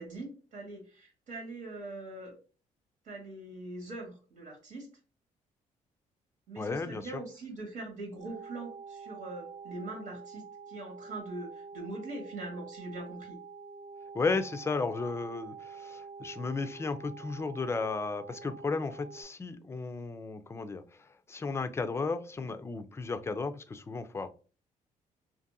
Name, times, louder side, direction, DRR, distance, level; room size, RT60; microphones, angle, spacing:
voice 1, 0.0-2.3 3.0-4.9 6.5-13.4, right 2 dB, 75° right, 1.3 m, -42 dB
voice 2, 6.6-7.2 14.1-24.3, left 4 dB, 20° left, 0.3 m, -34 dB
sound 1, 8.2-19.2, right 5 dB, 45° right, 0.6 m, -47 dB
2.6 x 2.5 x 2.6 m
cardioid pair, 90°, 14 cm